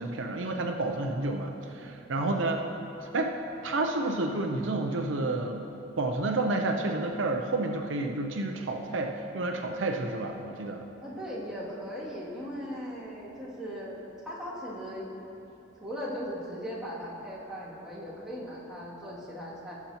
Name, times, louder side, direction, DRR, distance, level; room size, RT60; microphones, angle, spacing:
voice 1, 0.0-2.6 3.0-3.3 3.6-5.6 6.0-10.8, right 2 dB, 75° right, 3 dB, 0.6 m, -30 dB
voice 2, 2.1-2.8 11.0-15.1 15.8-19.8, equal, 5° right, -10 dB, 2.3 m, -38 dB
17.0 x 7.0 x 2.9 m, 3.0 s
head